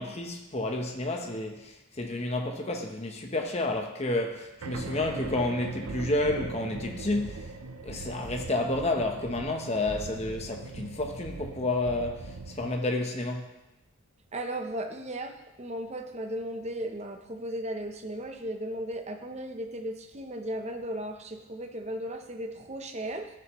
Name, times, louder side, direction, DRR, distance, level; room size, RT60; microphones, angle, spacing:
voice 1, 0.0-7.5 7.8-13.5, left 2 dB, 30° left, 0.8 m, -30 dB
sound 1, 4.6-12.7, right 3 dB, 85° right, 0.7 m, -40 dB
voice 2, 14.3-23.3, right 1 dB, 30° right, 0.7 m, -36 dB
12.5 x 6.9 x 3.1 m
head